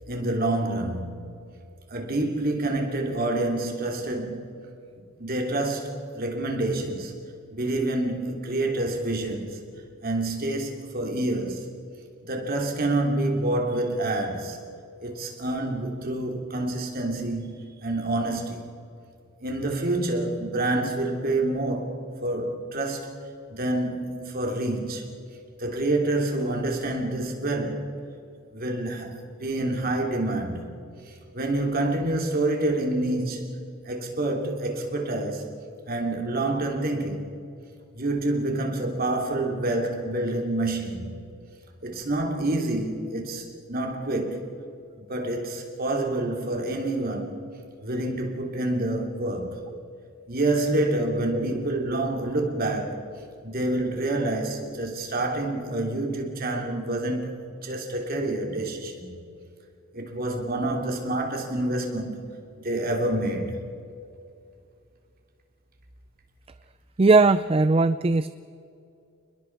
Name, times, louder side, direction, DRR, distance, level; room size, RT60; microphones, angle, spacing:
voice 1, 0.0-1.4 1.9-4.6 5.2-7.2 7.5-9.6 10.0-11.7 12.2-14.6 15.0-18.6 19.4-22.0 22.2-23.1 23.5-25.1 25.6-27.9 28.5-30.7 31.0-35.5 35.9-37.3 37.9-41.2 41.8-44.5 45.1-47.4 47.8-49.6 50.3-53.0 53.4-57.3 57.6-59.2 59.9-62.2 62.6-63.7, right 2 dB, 45° right, 3.2 m, -27 dB
voice 2, 67.0-68.3, right 3 dB, 25° right, 0.4 m, -19 dB
29.5 x 21.0 x 4.8 m
head